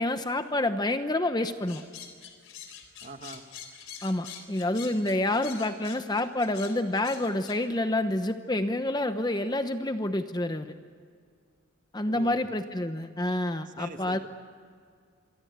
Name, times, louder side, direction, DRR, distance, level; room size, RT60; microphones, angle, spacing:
voice 1, 0.0-1.8 4.0-10.7 11.9-14.2, left 1 dB, 20° left, 9 dB, 0.9 m, -28 dB
sound 1, 1.7-7.6, left 8 dB, 70° left, 3.9 m, -45 dB
voice 2, 3.0-3.4 12.1-12.5 13.7-14.2, right 2 dB, 40° right, 7 dB, 1.7 m, -43 dB
26.5 x 24.0 x 8.1 m, 2.1 s
head